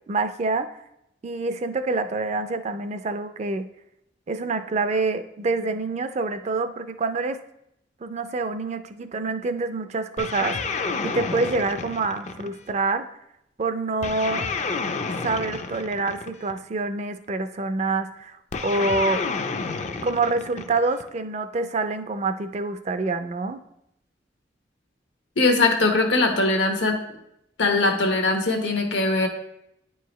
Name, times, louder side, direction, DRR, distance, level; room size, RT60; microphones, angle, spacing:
voice 1, 0.1-0.7 1.2-3.7 4.3-7.4 8.0-13.1 13.6-14.4 15.2-19.2 20.0-23.6, right 3 dB, 35° right, 10 dB, 0.4 m, -26 dB
sound 1, 10.2-12.8 14.0-16.6 18.5-21.1, left 4 dB, 40° left, 0.4 m, -30 dB
voice 2, 25.4-27.0 27.6-29.3, left 2 dB, 85° left, 5 dB, 1.0 m, -21 dB
9.4 x 4.7 x 3.1 m, 0.81 s
head